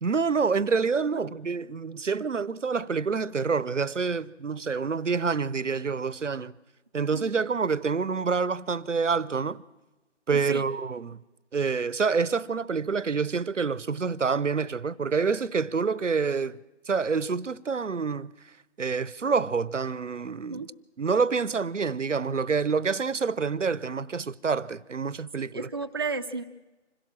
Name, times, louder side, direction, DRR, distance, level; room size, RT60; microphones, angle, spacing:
voice 1, 0.0-6.5 6.9-9.6 10.3-11.2 11.5-16.6 16.9-18.3 18.8-20.7 21.0-25.7, right 5 dB, 85° right, 0.9 m, -27 dB
voice 2, 10.3-10.6 20.5-20.7 25.4-26.4, right 4 dB, 20° right, 0.6 m, -33 dB
26.0 x 16.5 x 7.4 m
figure-of-eight pair, 155°, 36 cm